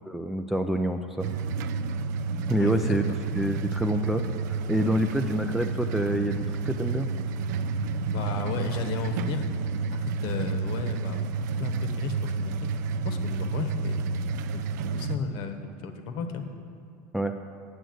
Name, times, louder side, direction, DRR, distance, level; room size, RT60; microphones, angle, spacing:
voice 1, 0.1-1.3 2.5-3.0 3.4-4.2 4.5-7.1 17.1-17.3, right 1 dB, 5° right, 4 dB, 0.3 m, -27 dB
sound 1, 1.2-15.2, right 4 dB, 80° right, 0.5 m, -30 dB
voice 2, 2.6-3.0 8.1-9.5 9.9-12.5 13.0-14.1 14.5-14.6 14.9-16.4, left 4 dB, 55° left, 6 dB, 1.1 m, -34 dB
9.1 x 6.3 x 7.8 m, 2.4 s
supercardioid pair, 145°, 9 cm